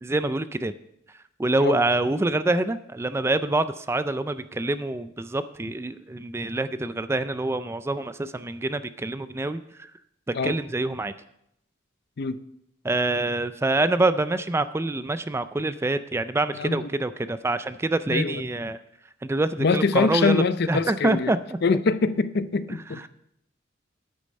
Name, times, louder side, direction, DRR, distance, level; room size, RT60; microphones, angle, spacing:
voice 1, 0.0-0.7 1.4-9.9 10.4-11.1 12.8-18.8 19.2-21.4, right 2 dB, 15° right, 12 dB, 0.3 m, -26 dB
voice 2, 16.6-16.9 18.1-18.4 19.6-21.3 21.6-23.1, left 4 dB, 55° left, 14 dB, 0.5 m, -24 dB
9.9 x 8.5 x 5.3 m, 0.77 s
head